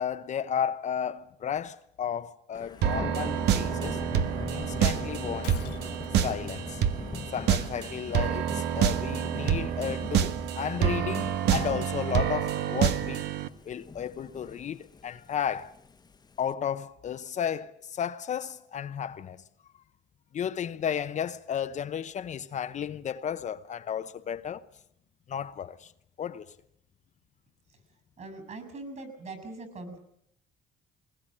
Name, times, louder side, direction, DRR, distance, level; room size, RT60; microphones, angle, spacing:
voice 1, 0.0-4.0 4.5-5.7 6.2-6.8 7.3-13.2 13.7-15.7 16.4-19.4 20.3-24.7 25.3-25.9 26.2-26.5, left 8 dB, 45° left, 0.9 m, -33 dB
Thunder / Rain, 2.5-16.5, left 4 dB, 25° left, 1.1 m, -42 dB
sound 1, 2.8-13.5, right 9 dB, 85° right, 1.3 m, -28 dB
Shatter, 5.4-6.3, left 14 dB, 85° left, 1.5 m, -45 dB
voice 2, 28.2-30.0, right 2 dB, 45° right, 7.0 m, -41 dB
21.5 x 20.0 x 8.8 m
cardioid pair, 110°, 17 cm